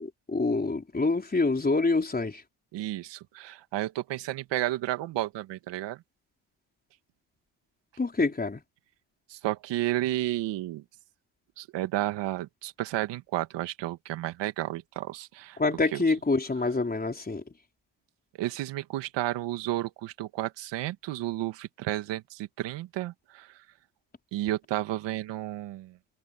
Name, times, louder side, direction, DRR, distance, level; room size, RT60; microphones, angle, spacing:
voice 1, 0.0-2.4 8.0-8.6 15.6-17.4, left 3 dB, 20° left, 4.5 m, -26 dB
voice 2, 2.7-6.0 9.3-10.8 11.6-15.6 15.9-16.0 18.4-23.7 24.3-26.0, right 15 dB, 75° right, 2.1 m, -32 dB
open air
supercardioid pair, 75°, 43 cm